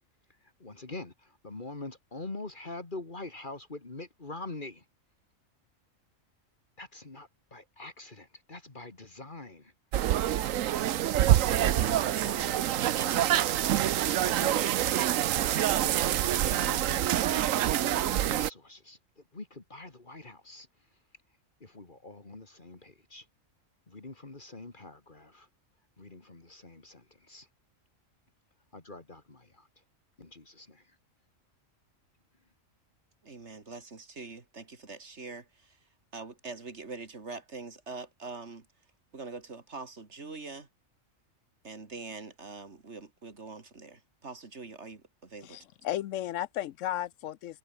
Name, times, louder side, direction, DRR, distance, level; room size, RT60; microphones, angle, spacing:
voice 1, 0.4-4.8 6.8-9.7 11.5-12.7 13.7-15.2 16.4-20.7 21.6-23.3 23.9-25.5 26.0-27.5 28.7-29.8 30.2-31.0, left 2 dB, 40° left, 2.4 m, -45 dB
sound 1, 9.9-18.5, right 12 dB, 80° right, 1.1 m, -26 dB
voice 2, 33.2-35.8 36.1-38.6 39.1-40.7 41.6-45.6, right 3 dB, 55° right, 3.0 m, -44 dB
voice 3, 45.4-47.6, left 12 dB, 75° left, 0.9 m, -34 dB
omnidirectional pair, 1.4 m